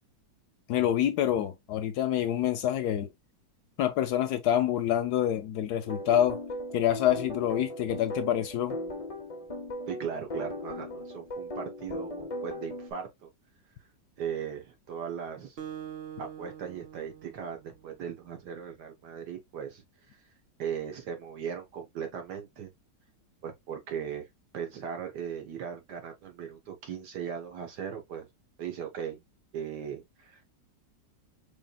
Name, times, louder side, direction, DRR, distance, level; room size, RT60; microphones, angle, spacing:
voice 1, 0.7-3.1 3.8-6.4 6.7-8.8, left 11 dB, 70° left, 1.0 m, -27 dB
sound 1, 5.8-12.9, left 1 dB, 45° left, 0.4 m, -38 dB
voice 2, 9.9-13.3 14.2-15.6 16.2-19.8 20.6-22.7 23.4-24.3 24.5-28.3 28.6-29.2 29.5-30.5, right 8 dB, 70° right, 1.6 m, -38 dB
Acoustic guitar, 15.6-18.3, right 9 dB, 90° right, 0.5 m, -44 dB
4.9 x 3.3 x 2.3 m
omnidirectional pair, 1.9 m